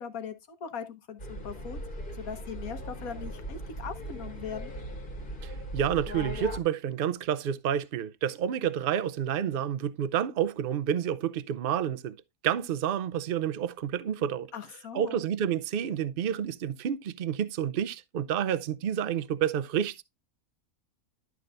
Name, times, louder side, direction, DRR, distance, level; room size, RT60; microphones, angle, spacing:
voice 1, 0.0-1.8 2.1-4.7 14.5-15.2, left 6 dB, 75° left, 1.6 m, -40 dB
sound 1, 1.2-6.6, equal, 35° left, 1.7 m, -38 dB
voice 2, 5.4-12.2 12.4-14.5 14.9-20.0, right 9 dB, 55° right, 0.6 m, -29 dB
11.5 x 6.1 x 2.5 m
omnidirectional pair, 1.5 m